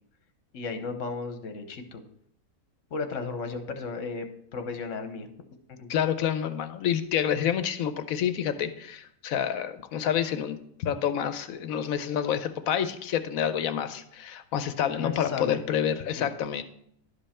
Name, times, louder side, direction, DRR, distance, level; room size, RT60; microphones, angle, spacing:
voice 1, 0.5-2.0 2.9-4.3 4.5-5.3 5.7-5.9 15.0-15.6 16.2-16.4, left 4 dB, 65° left, 7 dB, 1.3 m, -34 dB
voice 2, 5.9-16.6, left 9 dB, 80° left, 11 dB, 1.1 m, -28 dB
11.5 x 5.4 x 4.3 m, 0.70 s
omnidirectional pair, 1.5 m